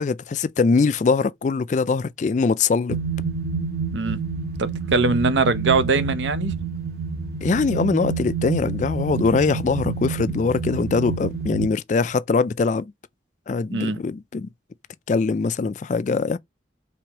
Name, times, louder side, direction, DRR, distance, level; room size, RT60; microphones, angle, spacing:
voice 1, 0.0-3.0 7.4-12.9 13.5-14.5 15.1-16.4, left 4 dB, 40° left, 0.3 m, -22 dB
sound 1, 2.9-11.7, right 5 dB, 55° right, 1.0 m, -28 dB
voice 2, 4.6-6.5 13.7-14.0, right 3 dB, 70° right, 0.6 m, -22 dB
4.7 x 3.4 x 2.8 m
head